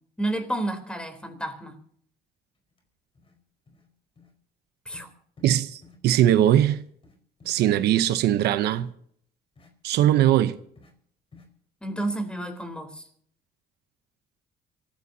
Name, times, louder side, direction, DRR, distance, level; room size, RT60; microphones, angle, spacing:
voice 1, 0.2-1.8 4.9-5.1 11.8-13.1, right 1 dB, 5° left, 3.6 m, -31 dB
sound 1, 2.7-2.8 3.1-3.4 3.7-3.9 4.2-4.3 4.9-5.1 5.4-5.6 5.8-6.0 6.3-6.4 6.7-7.9 8.2-8.3 8.8-8.9 9.6-9.7 10.1-10.3 10.8-10.9 11.3-11.5, left 4 dB, 35° left, 4.6 m, -53 dB
voice 2, 5.4-6.8 7.5-8.9 9.8-10.5, right 12 dB, 80° right, 0.9 m, -20 dB
26.0 x 15.0 x 2.8 m
cardioid pair, 110°, 17 cm